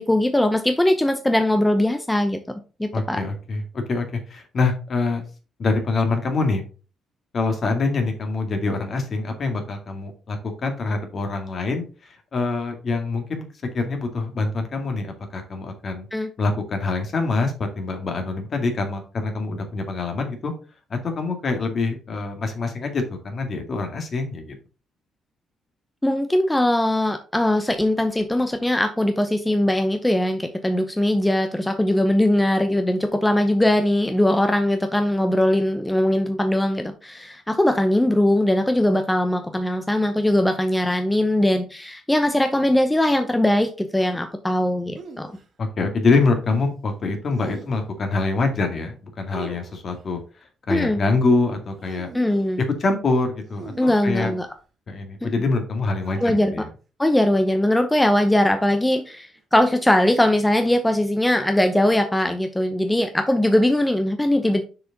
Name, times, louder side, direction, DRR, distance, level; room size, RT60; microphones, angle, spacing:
voice 1, 0.0-2.4 2.8-3.2 16.1-16.3 26.0-45.3 50.7-51.0 52.1-52.6 53.8-54.5 55.2-55.3 56.2-56.5 57.0-64.6, left 1 dB, 10° left, 7 dB, 0.7 m, -20 dB
voice 2, 2.9-5.2 5.6-6.6 7.3-11.8 12.3-13.5 13.7-16.1 16.4-20.5 20.9-24.5 45.6-50.2 50.7-52.1 52.8-54.3 54.9-56.7, left 3 dB, 50° left, 5 dB, 2.0 m, -25 dB
sound 1, 44.9-45.4 47.3-48.0 49.3-50.1 51.6-52.6 53.4-54.6 56.0-56.5 57.3-57.6 58.8-59.4 60.6-60.9, right 4 dB, 50° right, 1.7 m, -42 dB
6.5 x 4.8 x 4.0 m, 0.35 s
cardioid pair, 90°, 0 cm